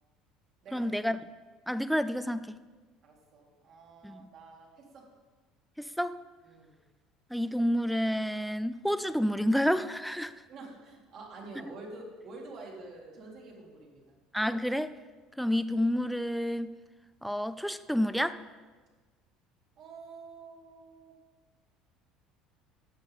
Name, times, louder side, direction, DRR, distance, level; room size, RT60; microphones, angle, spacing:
voice 1, 0.7-1.2 1.7-2.6 4.0-4.2 5.8-6.2 7.3-10.3 14.3-15.0 15.4-16.7 17.2-18.4, equal, ahead, 13 dB, 0.4 m, -29 dB
voice 2, 3.0-5.1 6.4-6.8 10.5-14.1 19.8-21.2, right 3 dB, 55° right, -1 dB, 2.4 m, -48 dB
11.5 x 7.5 x 3.6 m, 1.4 s
supercardioid pair, 95°, 0 cm